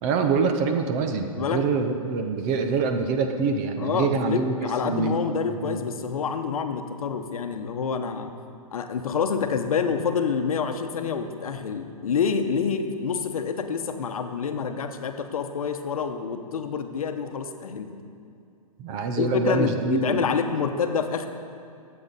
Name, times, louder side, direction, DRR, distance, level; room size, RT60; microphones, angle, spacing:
voice 1, 0.0-5.8 18.8-20.3, right 5 dB, 25° right, 6 dB, 0.5 m, -25 dB
voice 2, 3.8-8.3 8.7-17.9 19.2-21.3, left 6 dB, 75° left, 7 dB, 0.9 m, -27 dB
13.0 x 7.8 x 4.0 m, 2.5 s
hypercardioid pair, 150°, 18 cm